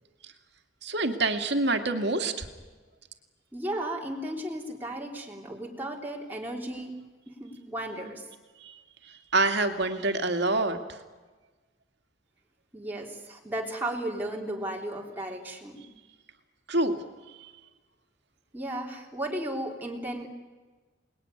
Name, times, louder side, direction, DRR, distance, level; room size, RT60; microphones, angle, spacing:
voice 1, 0.8-2.5 8.6-8.8 9.1-11.0 16.7-17.0, right 2 dB, 60° right, 6 dB, 2.4 m, -26 dB
voice 2, 3.5-6.9 7.3-8.2 12.7-15.8 18.5-20.3, right 1 dB, 10° right, -2 dB, 3.2 m, -35 dB
29.0 x 20.5 x 9.7 m, 1.3 s
head